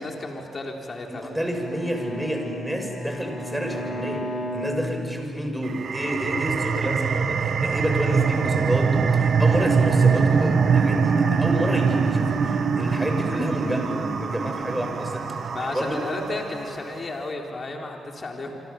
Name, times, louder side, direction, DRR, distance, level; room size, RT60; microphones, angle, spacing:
voice 1, 0.0-1.3 15.5-18.6, left 2 dB, 45° left, 1 dB, 3.8 m, -33 dB
voice 2, 1.1-4.3 4.5-16.0, equal, 5° right, 3 dB, 6.9 m, -29 dB
Bowed string instrument, 1.2-5.6, left 1 dB, 70° left, 4.4 m, -34 dB
sound 1, 5.6-16.8, right 5 dB, 60° right, 1.5 m, -23 dB
27.0 x 26.0 x 7.2 m, 2.5 s
hypercardioid pair, 40°, 0 cm